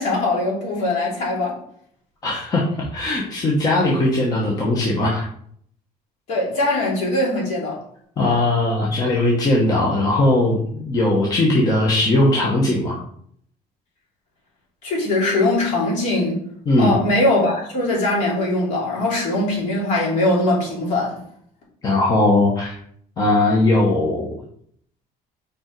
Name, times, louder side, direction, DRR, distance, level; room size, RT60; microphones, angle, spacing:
voice 1, 0.0-1.6 6.3-7.8 14.8-16.4 16.8-21.2, left 2 dB, 50° left, -3 dB, 2.8 m, -21 dB
voice 2, 2.2-5.3 8.2-13.0 16.7-16.9 21.8-22.7 23.2-24.3, left 2 dB, 25° left, -3 dB, 1.1 m, -19 dB
5.3 x 5.0 x 4.6 m, 0.64 s
cardioid pair, 180°, 16 cm